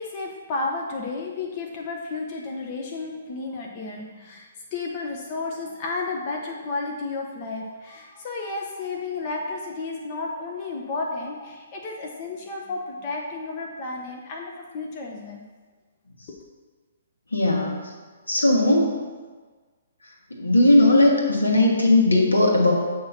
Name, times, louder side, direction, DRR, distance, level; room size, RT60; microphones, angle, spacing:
voice 1, 0.0-15.4 16.3-16.4, left 3 dB, 35° left, 0 dB, 0.7 m, -32 dB
voice 2, 17.3-17.8 18.3-18.9 20.3-22.7, left 1 dB, 80° left, -1 dB, 1.4 m, -18 dB
7.5 x 2.9 x 5.7 m, 1.4 s
figure-of-eight pair, 125°, 0 cm